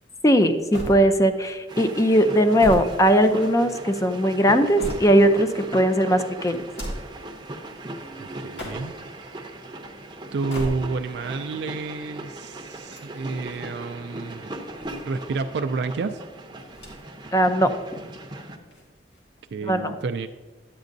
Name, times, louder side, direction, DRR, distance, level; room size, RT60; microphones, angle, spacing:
voice 1, 0.2-6.6 17.3-18.0 19.6-20.0, equal, 20° left, 8 dB, 0.5 m, -19 dB
sound 1, 0.7-1.5 2.3-3.7 4.3-5.4 6.6-7.2 8.4-9.1 10.3-11.2 12.7-13.6 14.5-15.5 16.7-17.3 17.6-17.7 18.6-19.4, equal, 70° left, 1.9 m, -37 dB
sound 2, 1.7-18.6, right 1 dB, 25° right, 0.7 m, -38 dB
voice 2, 8.2-9.0 10.3-14.5 15.0-16.2 19.5-20.3, right 4 dB, 70° right, 7 dB, 0.3 m, -30 dB
10.5 x 8.2 x 2.6 m, 1.3 s
head